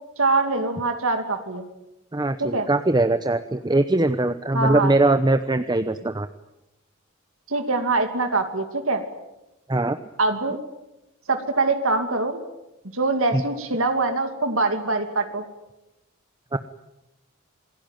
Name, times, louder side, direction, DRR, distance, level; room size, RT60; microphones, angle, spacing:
voice 1, 0.2-1.6 2.4-2.7 4.5-4.9 7.5-9.0 10.2-10.6 11.3-12.4 12.9-15.4, right 3 dB, 70° right, 6 dB, 2.6 m, -23 dB
voice 2, 2.1-6.3 9.7-10.0 13.3-13.4 16.5-16.6, right 2 dB, 20° right, 10 dB, 0.8 m, -21 dB
27.0 x 20.5 x 9.1 m, 0.97 s
head